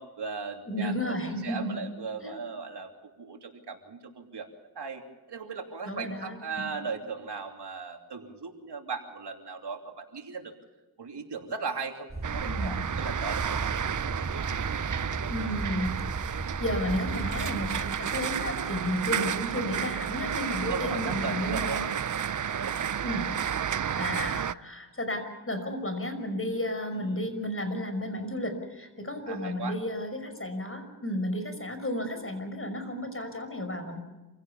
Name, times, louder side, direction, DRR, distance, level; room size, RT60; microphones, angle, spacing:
voice 1, 0.0-1.1 1.4-2.9 3.2-4.5 4.7-10.5 11.0-13.6 20.7-21.8 22.3-23.0 26.9-27.3 29.3-29.8, right 5 dB, 80° right, 3 dB, 3.0 m, -38 dB
voice 2, 0.7-1.9 2.2-2.3 5.8-6.7 12.4-12.8 15.3-15.9 16.2-21.8 23.0-23.3 23.9-34.0, left 1 dB, 30° left, 7 dB, 5.8 m, -33 dB
sound 1, 12.1-17.9, right 2 dB, 25° right, 2.7 m, -36 dB
sound 2, 12.2-24.5, right 8 dB, 50° right, 0.6 m, -31 dB
27.0 x 17.0 x 7.1 m, 1.1 s
cardioid pair, 55°, 40 cm